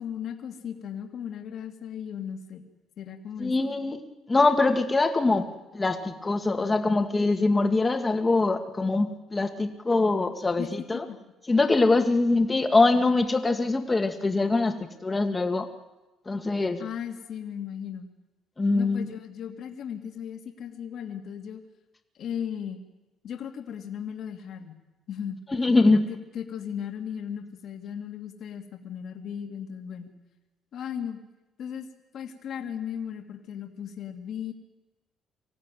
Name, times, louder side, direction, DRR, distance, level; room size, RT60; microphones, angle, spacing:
voice 1, 0.0-2.7 3.0-3.7 10.6-10.7 10.9-11.2 16.8-18.1 18.7-21.6 22.2-22.8 23.2-24.7 25.1-25.4 25.9-30.1 30.7-31.2 31.6-31.9 32.1-34.5, left 8 dB, 60° left, 3 dB, 2.4 m, -36 dB
voice 2, 3.4-4.0 4.3-5.5 5.7-11.1 11.5-15.7 16.3-16.8 18.6-19.1 25.5-26.1, left 3 dB, 20° left, 5 dB, 2.0 m, -23 dB
25.0 x 16.5 x 9.2 m, 1.1 s
cardioid pair, 125°, 0 cm